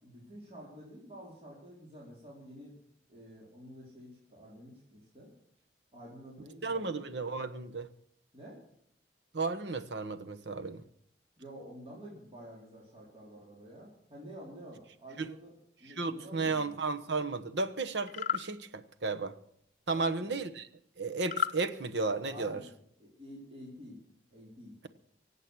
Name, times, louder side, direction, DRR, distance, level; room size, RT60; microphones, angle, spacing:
voice 1, 0.0-2.8 3.1-5.3 5.9-7.1 8.3-8.6 11.4-15.5 15.8-16.8 19.9-20.4 22.3-22.7 23.0-24.0 24.3-24.8, equal, 35° right, 4.1 m, -49 dB
voice 2, 6.6-7.9 9.3-10.8 15.2-15.3 15.9-19.3 19.9-20.7 21.0-22.6, right 3 dB, 75° right, 1.1 m, -34 dB
sound 1, 18.0-18.5 21.2-21.6, left 8 dB, 45° left, 0.7 m, -32 dB
24.0 x 8.3 x 6.2 m
head